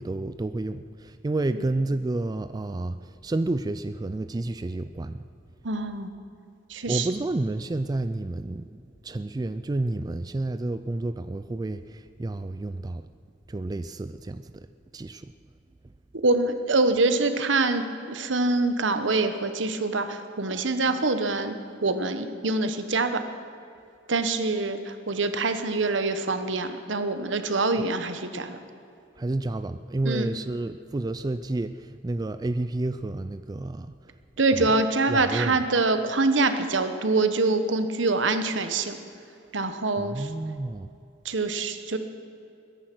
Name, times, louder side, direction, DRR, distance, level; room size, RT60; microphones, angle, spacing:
voice 1, 0.0-5.2 6.9-8.6 9.0-13.0 13.5-14.7 14.9-15.3 29.2-34.0 34.6-34.7 35.1-35.6 40.0-40.9, right 2 dB, 20° right, 11 dB, 0.3 m, -30 dB
voice 2, 5.6-6.1 6.7-7.1 16.2-17.8 18.1-21.5 21.8-23.2 24.1-28.6 30.0-30.3 34.4-39.0 39.5-40.3 41.2-42.0, right 3 dB, 70° right, 9 dB, 1.2 m, -25 dB
22.0 x 10.5 x 6.1 m, 2.6 s
head